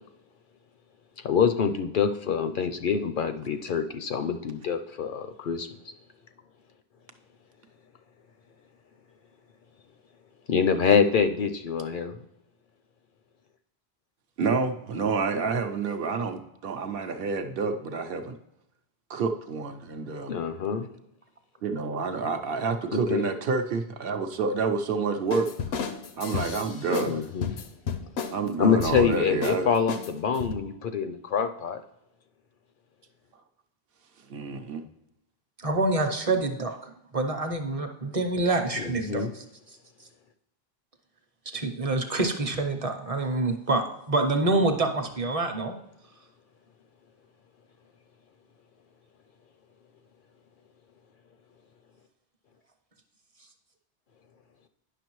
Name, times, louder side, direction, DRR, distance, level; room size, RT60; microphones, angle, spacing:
voice 1, 1.2-5.7 10.5-12.2 20.3-20.9 22.9-23.3 27.1-27.5 28.6-31.8 38.8-39.3, left 6 dB, 60° left, 8 dB, 0.6 m, -25 dB
voice 2, 14.4-18.4 19.1-20.4 21.6-25.5 26.2-27.3 28.3-29.7 34.3-34.8, right 4 dB, 70° right, 6 dB, 0.8 m, -28 dB
sound 1, 25.3-27.1 27.4-28.4 28.8-29.1 29.4-29.6 29.9-30.5, left 6 dB, 85° left, 0.9 m, -32 dB
voice 3, 35.6-40.1 41.5-45.7, right 2 dB, 40° right, 6 dB, 0.7 m, -27 dB
9.9 x 5.9 x 3.0 m, 0.86 s
omnidirectional pair, 1.0 m